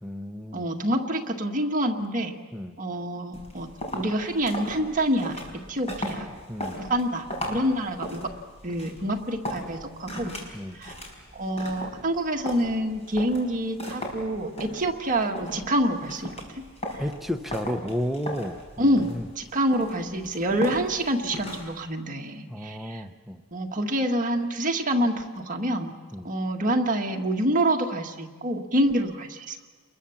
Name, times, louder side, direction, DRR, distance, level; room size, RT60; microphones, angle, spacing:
voice 1, 0.0-0.7 2.5-2.8 6.5-6.8 10.5-10.8 17.0-19.3 22.5-23.4 26.1-26.3, equal, ahead, 6 dB, 0.8 m, -32 dB
voice 2, 0.5-2.3 2.8-3.7 3.9-5.4 5.7-6.3 6.8-8.2 8.6-10.4 10.8-10.9 11.3-16.3 18.8-19.1 19.4-23.0 23.5-25.9 26.2-29.6, right 1 dB, 35° right, 2 dB, 1.7 m, -26 dB
sound 1, 3.3-21.8, equal, 30° left, 5.2 m, -38 dB
29.5 x 22.0 x 7.2 m, 1.4 s
head